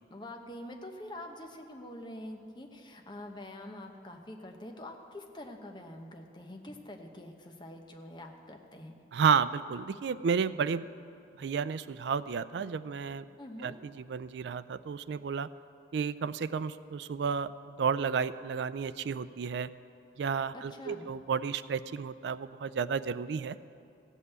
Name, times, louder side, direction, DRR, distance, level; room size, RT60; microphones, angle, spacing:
voice 1, 0.1-8.9 13.4-13.7 20.5-21.1, left 1 dB, 25° left, 3 dB, 0.9 m, -45 dB
voice 2, 9.1-10.9 11.4-13.2 13.6-15.5 15.9-19.7 20.2-23.6, right 6 dB, 80° right, 16 dB, 0.4 m, -32 dB
15.5 x 5.6 x 8.1 m, 2.5 s
head